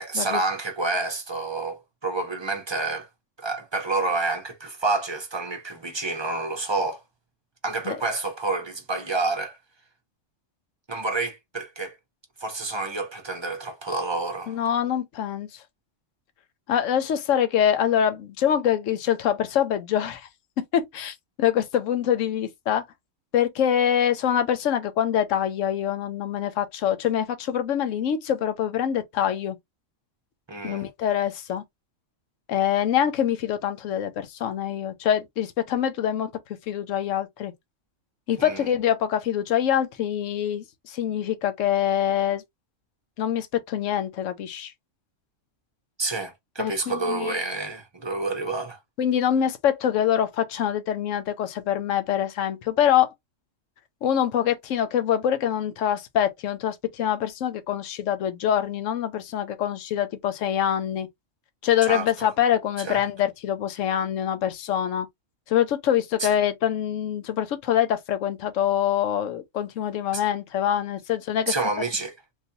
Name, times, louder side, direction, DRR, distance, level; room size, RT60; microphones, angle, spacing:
voice 1, 0.0-3.1 3.4-7.0 7.6-9.6 10.9-12.0 12.4-14.6 30.5-30.9 38.4-38.7 46.0-48.8 61.8-62.3 62.8-63.0 66.2-66.3 70.1-70.2 71.5-72.1, right 3 dB, 25° right, 0.6 m, -28 dB
voice 2, 14.5-15.6 16.7-20.3 20.7-22.8 23.3-29.6 30.6-31.6 32.5-36.3 36.7-37.5 38.3-42.4 43.2-44.7 46.6-47.4 49.0-53.1 54.0-61.1 61.6-65.1 65.5-71.5, left 10 dB, 85° left, 1.0 m, -25 dB
3.7 x 2.7 x 2.6 m
omnidirectional pair, 1.3 m